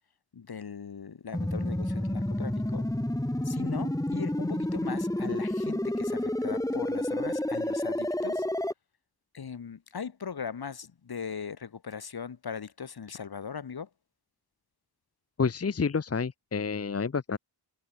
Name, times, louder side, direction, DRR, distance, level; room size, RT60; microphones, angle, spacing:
voice 1, 0.3-2.9 3.4-8.5 9.3-13.9, left 6 dB, 60° left, 2.4 m, -39 dB
sound 1, 1.3-8.7, left 1 dB, 10° left, 3.0 m, -30 dB
voice 2, 15.4-17.4, left 5 dB, 35° left, 1.1 m, -29 dB
cardioid pair, 50°, 42 cm